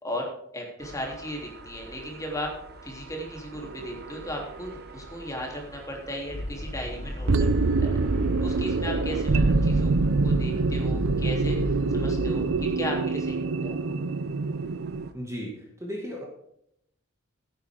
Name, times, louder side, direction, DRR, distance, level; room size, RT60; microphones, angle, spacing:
voice 1, 0.5-2.5 2.8-8.0 8.4-9.9 10.2-12.5 12.7-13.7, equal, 15° left, 0 dB, 3.3 m, -36 dB
sound 1, 0.8-15.1, right 2 dB, 55° right, 1.3 m, -48 dB
sound 2, 3.5-4.2 4.7-4.8 7.3-15.1, right 3 dB, 80° right, 0.6 m, -25 dB
sound 3, 6.3-12.7, left 1 dB, 35° left, 1.1 m, -33 dB
voice 2, 15.1-16.3, equal, 15° right, -2 dB, 2.1 m, -35 dB
14.0 x 9.9 x 3.7 m, 0.74 s
head